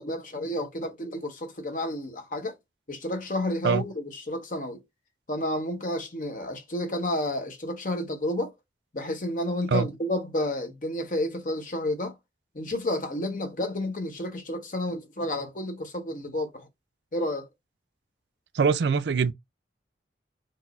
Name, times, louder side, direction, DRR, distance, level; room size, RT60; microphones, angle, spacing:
voice 1, 0.0-2.5 2.9-4.8 5.3-8.5 8.9-12.2 12.5-16.7 17.1-17.5, left 1 dB, 45° left, 1.0 m, -31 dB
voice 2, 18.5-19.3, right 5 dB, 75° right, 0.4 m, -23 dB
4.8 x 2.0 x 4.1 m
head